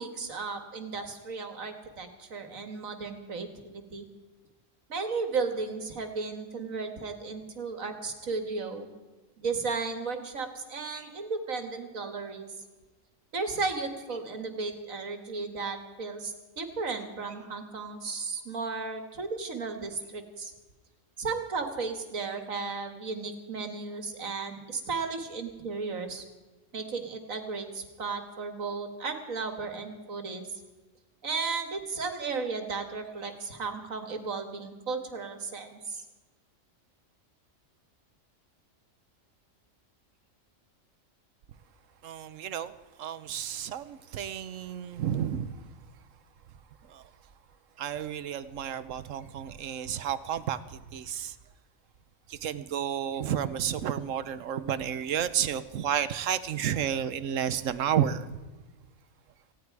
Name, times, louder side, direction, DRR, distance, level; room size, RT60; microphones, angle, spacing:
voice 1, 0.0-4.1 4.9-8.9 9.4-12.5 13.3-20.5 21.2-26.3 26.7-30.4 31.2-36.0, right 4 dB, 90° right, 6 dB, 2.2 m, -34 dB
voice 2, 42.0-45.5 46.9-47.0 47.8-51.3 52.3-58.3, right 9 dB, 70° right, 14 dB, 1.2 m, -31 dB
18.5 x 16.5 x 4.8 m, 1.2 s
omnidirectional pair, 1.4 m